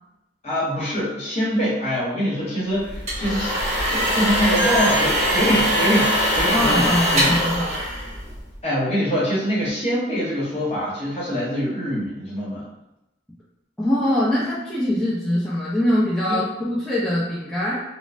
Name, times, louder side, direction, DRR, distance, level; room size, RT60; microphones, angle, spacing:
voice 1, 0.4-3.5 3.9-7.3 8.6-12.7 16.3-16.4, equal, 35° left, -7 dB, 0.9 m, -24 dB
sound 1, 2.8-8.6, equal, 35° right, 1.2 m, -22 dB
voice 2, 6.5-7.8 13.8-17.8, left 1 dB, ahead, -10 dB, 0.4 m, -23 dB
3.1 x 2.0 x 2.5 m, 0.90 s
head